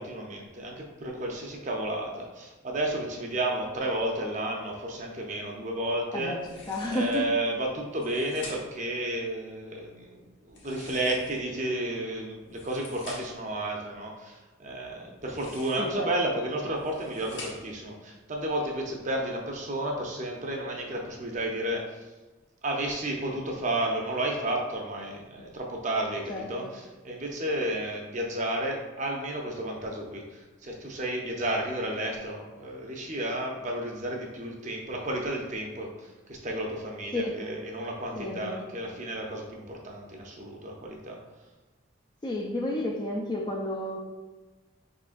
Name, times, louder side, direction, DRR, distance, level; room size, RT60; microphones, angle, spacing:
voice 1, 0.0-6.4 6.9-22.0 22.6-41.2, right 1 dB, 35° right, 0 dB, 0.6 m, -32 dB
sound 1, 6.4-7.3 7.9-8.9 10.5-11.6 12.4-13.5 15.1-16.0 16.6-17.8, left 2 dB, 60° left, 1.0 m, -47 dB
voice 2, 6.7-7.3 15.8-16.1 26.3-26.7 37.1-37.4 38.2-38.7 42.2-44.0, left 1 dB, 20° left, 0 dB, 0.3 m, -31 dB
4.9 x 3.7 x 2.5 m, 1.2 s
head